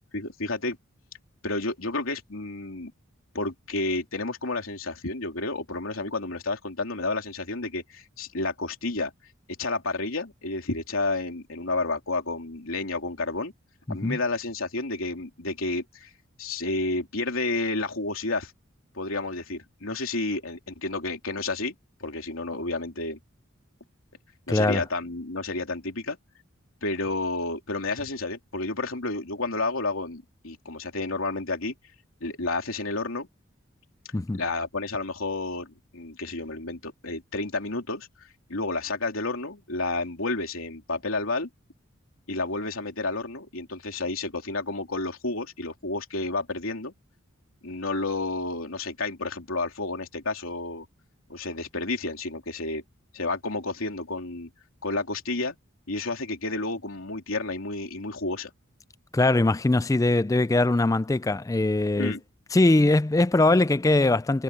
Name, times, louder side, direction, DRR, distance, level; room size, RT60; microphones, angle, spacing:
voice 1, 0.1-0.8 1.4-2.9 3.3-9.1 9.6-13.5 13.9-16.1 16.4-18.5 18.9-21.7 22.0-23.2 24.5-26.2 26.8-31.7 32.2-33.3 34.4-41.5 42.3-46.9 47.6-50.8 51.3-52.8 53.1-54.5 54.8-55.5 55.9-58.5 62.0-62.2, left 2 dB, 80° left, 3.2 m, -31 dB
voice 2, 24.5-24.8 34.1-34.4 59.1-62.2 62.5-64.4, left 2 dB, 15° left, 0.4 m, -21 dB
head